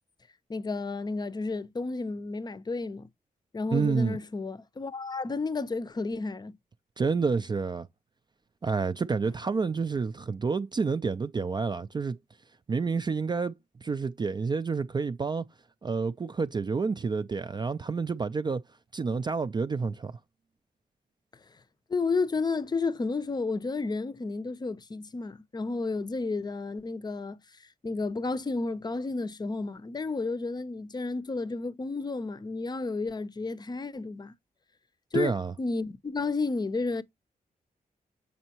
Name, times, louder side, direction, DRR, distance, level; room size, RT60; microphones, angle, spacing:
voice 1, 0.5-3.1 3.5-6.5 21.9-27.4 27.8-34.3 35.1-37.0, left 3 dB, 25° left, 0.6 m, -32 dB
voice 2, 3.7-4.2 7.0-7.9 8.6-12.2 12.7-13.6 13.8-15.5 15.8-18.6 18.9-20.1 35.1-35.5, right 4 dB, 30° right, 0.4 m, -29 dB
6.8 x 5.4 x 2.9 m
cardioid pair, 95°, 15 cm